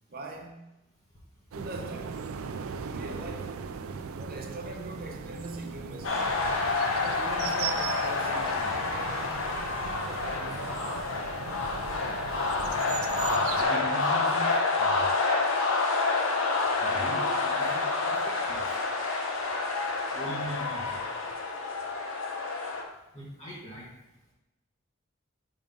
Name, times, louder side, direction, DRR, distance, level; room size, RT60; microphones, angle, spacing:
voice 1, 0.1-0.7 1.5-2.3 2.8-3.6 4.1-6.4 7.0-9.6 10.1-11.0, right 2 dB, 45° right, 0.9 m, -42 dB
sound 1, 1.5-13.6, right 6 dB, 90° right, 0.4 m, -39 dB
sound 2, 6.0-22.8, left 3 dB, 80° left, 0.9 m, -28 dB
voice 2, 13.5-14.5 14.8-15.1 16.8-18.7 20.1-21.0 23.1-23.9, equal, 30° left, 1.3 m, -40 dB
5.0 x 3.7 x 5.3 m
head